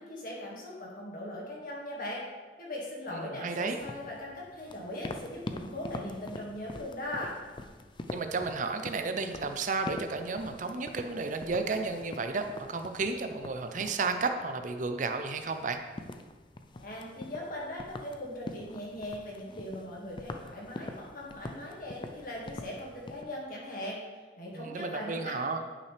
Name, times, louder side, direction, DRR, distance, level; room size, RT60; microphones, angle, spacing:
voice 1, 0.0-2.3 2.6-7.3 16.7-24.0 24.4-25.6, left 1 dB, 50° left, -4 dB, 2.0 m, -40 dB
voice 2, 3.1-3.8 8.1-15.8 24.5-25.6, right 4 dB, 45° right, 7 dB, 0.5 m, -32 dB
sound 1, 3.7-23.2, left 2 dB, 25° left, 0.4 m, -45 dB
9.3 x 5.6 x 3.3 m, 1.3 s
head